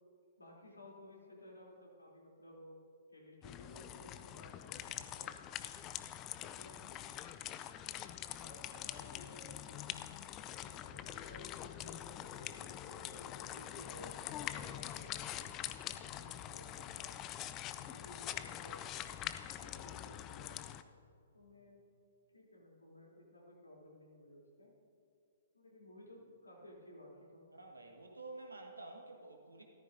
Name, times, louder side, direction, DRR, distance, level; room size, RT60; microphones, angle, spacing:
voice 1, 0.4-2.8 3.1-5.3 6.4-7.0 8.4-10.0 10.5-12.0 12.2-15.5 16.1-17.1 17.7-18.8 19.6-20.8 21.3-21.8 22.3-24.7 25.5-27.4, left 1 dB, 85° left, -3 dB, 3.3 m, -56 dB
sound 1, 3.4-20.8, left 12 dB, 25° left, 0.4 m, -45 dB
voice 2, 27.5-29.6, right 2 dB, 85° right, 2 dB, 1.6 m, -51 dB
14.5 x 13.5 x 2.7 m, 2.4 s
figure-of-eight pair, 120°, 0 cm